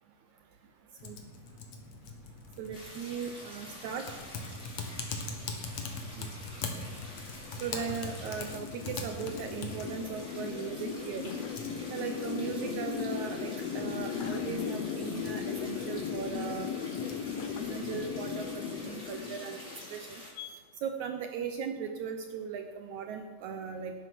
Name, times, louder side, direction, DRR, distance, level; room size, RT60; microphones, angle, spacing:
Typing, 1.0-19.0, left 3 dB, 55° left, 2.4 m, -44 dB
voice 1, 2.6-4.1 6.2-6.3 7.6-11.4 11.9-16.7 17.6-19.6 19.9-20.2 20.8-23.9, right 7 dB, 70° right, 5 dB, 2.0 m, -38 dB
sound 1, 2.7-20.3, left 1 dB, 20° left, 4.2 m, -48 dB
sound 2, 4.3-20.5, left 7 dB, 75° left, 1.5 m, -38 dB
18.0 x 10.5 x 6.1 m, 1.4 s
omnidirectional pair, 4.0 m